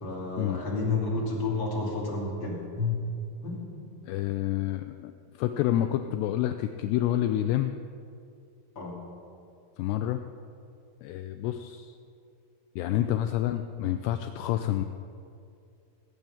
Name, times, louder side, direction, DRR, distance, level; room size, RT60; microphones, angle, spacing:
voice 1, 0.0-3.1 3.4-3.8 8.7-9.0, left 3 dB, 30° left, -3 dB, 2.5 m, -30 dB
voice 2, 4.0-5.1 5.4-7.8 9.8-10.2 11.0-11.9 12.8-14.8, left 12 dB, 90° left, 7 dB, 2.4 m, -28 dB
18.5 x 8.3 x 7.2 m, 2.4 s
omnidirectional pair, 5.4 m